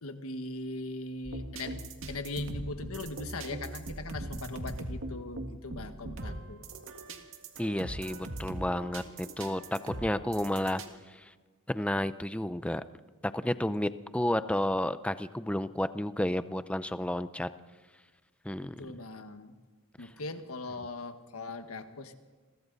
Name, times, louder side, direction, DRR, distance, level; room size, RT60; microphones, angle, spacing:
voice 1, 0.0-1.8 2.1-6.6 18.6-19.5 20.0-22.1, left 2 dB, 75° left, 7 dB, 1.6 m, -40 dB
sound 1, 1.2-10.9, right 1 dB, 65° right, 2.0 m, -40 dB
voice 2, 7.6-10.8 11.1-11.3 11.7-12.8 13.2-17.5 18.4-18.7, left 1 dB, 5° left, 12 dB, 0.6 m, -31 dB
29.5 x 22.5 x 4.1 m, 1.4 s
head